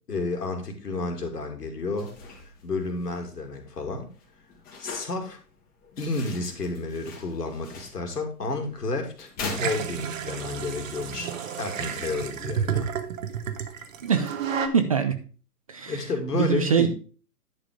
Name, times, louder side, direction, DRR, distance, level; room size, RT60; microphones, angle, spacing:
voice 1, 0.1-2.1 2.6-4.1 4.8-5.4 6.0-12.9 15.9-16.9, left 3 dB, 80° left, 2.7 m, -31 dB
sound 1, 1.8-10.4, left 4 dB, 20° left, 2.0 m, -43 dB
sound 2, 9.5-14.7, right 7 dB, 55° right, 1.4 m, -31 dB
voice 2, 14.0-14.3 14.7-15.2 15.7-16.0 16.3-16.9, right 7 dB, 25° right, 0.4 m, -23 dB
10.5 x 4.9 x 5.1 m
hypercardioid pair, 130°, 47 cm